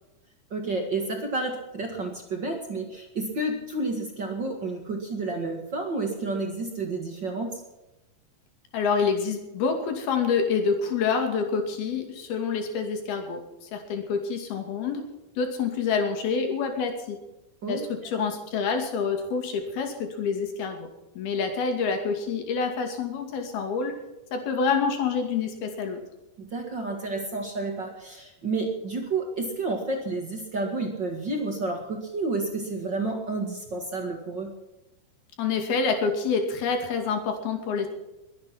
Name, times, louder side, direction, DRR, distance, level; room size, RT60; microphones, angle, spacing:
voice 1, 0.5-7.6 17.6-17.9 26.4-34.5, right 3 dB, 40° right, 2 dB, 2.0 m, -30 dB
voice 2, 8.7-13.4 13.7-15.0 15.4-17.2 17.7-20.9 21.2-23.9 24.3-26.0 35.4-37.9, left 5 dB, 85° left, 4 dB, 4.4 m, -27 dB
22.5 x 9.7 x 6.0 m, 0.98 s
omnidirectional pair, 4.3 m